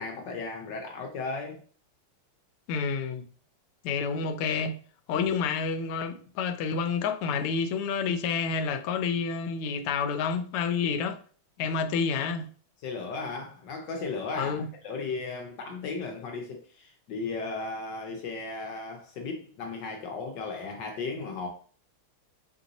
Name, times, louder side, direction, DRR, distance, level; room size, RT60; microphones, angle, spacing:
voice 1, 0.0-1.6 5.1-5.3 11.6-11.7 12.8-21.5, left 4 dB, 65° left, 1.3 m, -36 dB
voice 2, 2.7-3.3 3.8-4.8 5.1-11.2 11.6-12.5 14.3-14.7, left 5 dB, 90° left, 1.5 m, -29 dB
4.5 x 2.7 x 3.9 m
omnidirectional pair, 2.3 m